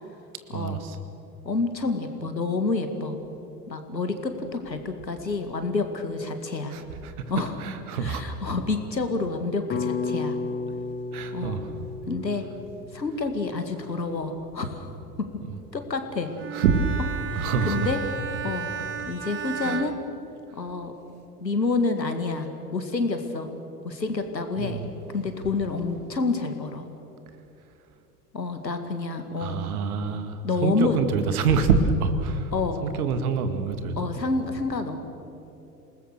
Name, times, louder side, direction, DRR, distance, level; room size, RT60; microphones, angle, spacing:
voice 1, 0.5-1.0 6.7-7.3 7.6-8.2 11.1-11.7 15.5-15.6 16.5-17.0 17.3-17.9 19.6-19.9 24.6-24.9 29.4-32.5 32.8-34.1, right 5 dB, 60° right, 9 dB, 2.2 m, -26 dB
voice 2, 1.4-3.2 3.7-6.7 7.3-7.5 8.0-10.4 11.3-11.6 12.1-12.5 12.9-14.9 15.7-16.3 17.3-18.0 18.4-18.7 19.1-19.9 20.5-20.9 21.4-23.5 23.8-24.8 25.1-26.8 28.3-29.6 30.4-31.0 32.5-32.8 34.0-35.0, left 3 dB, 85° left, 7 dB, 2.2 m, -28 dB
sound 1, 9.7-14.0, left 4 dB, 20° left, 1.2 m, -33 dB
Bowed string instrument, 16.4-20.9, right 7 dB, 25° right, 1.2 m, -34 dB
27.5 x 19.5 x 6.8 m, 2.9 s
figure-of-eight pair, 85°, 49 cm